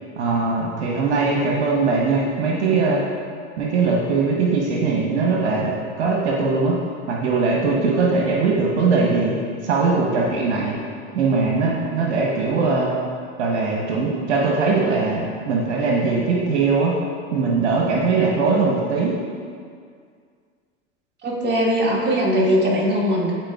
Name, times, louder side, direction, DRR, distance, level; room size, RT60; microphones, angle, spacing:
voice 1, 0.2-3.0 3.6-6.8 7.1-9.4 9.6-10.8 11.1-12.9 13.4-17.0 17.3-19.2, right 4 dB, 75° right, -2 dB, 1.0 m, -20 dB
voice 2, 21.2-23.3, equal, 30° right, -3 dB, 1.6 m, -20 dB
11.0 x 4.5 x 2.3 m, 2.1 s
hypercardioid pair, 85°, 34 cm